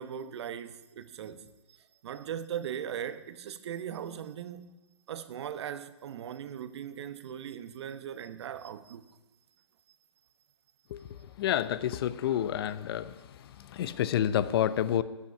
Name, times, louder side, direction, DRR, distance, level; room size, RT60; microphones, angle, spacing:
voice 1, 0.0-1.8 2.0-4.7 5.1-9.1 13.8-14.0, right 9 dB, 60° right, 1.0 m, -39 dB
voice 2, 11.4-13.1 13.7-15.0, left 10 dB, 50° left, 0.7 m, -28 dB
15.0 x 6.0 x 9.8 m
hypercardioid pair, 140°, 16 cm